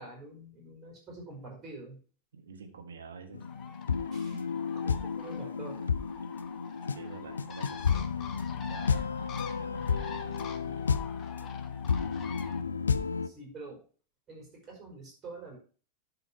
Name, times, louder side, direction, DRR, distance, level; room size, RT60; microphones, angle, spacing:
voice 1, 0.0-2.0 4.1-5.9 13.2-13.8 14.3-15.6, right 2 dB, 30° right, 0 dB, 4.6 m, -46 dB
voice 2, 2.3-3.5 6.9-8.2 8.7-9.1 9.6-10.9, right 5 dB, 65° right, 6 dB, 1.4 m, -48 dB
sound 1, 3.3-13.3, left 6 dB, 70° left, 0.4 m, -32 dB
Bird, 3.4-12.6, left 6 dB, 30° left, 1.1 m, -46 dB
11.0 x 4.9 x 4.5 m, 0.39 s
figure-of-eight pair, 90°, 0 cm